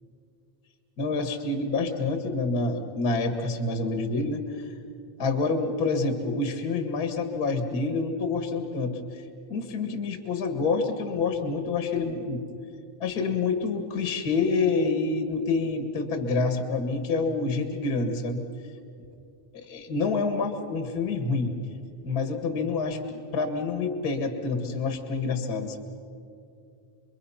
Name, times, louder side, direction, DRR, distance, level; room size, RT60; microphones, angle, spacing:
voice 1, 1.0-4.7 5.2-9.2 9.5-12.4 13.0-18.4 19.5-21.5 22.0-23.0 23.3-25.8, left 3 dB, 40° left, 6 dB, 1.6 m, -27 dB
27.5 x 23.0 x 5.7 m, 2.5 s
omnidirectional pair, 3.7 m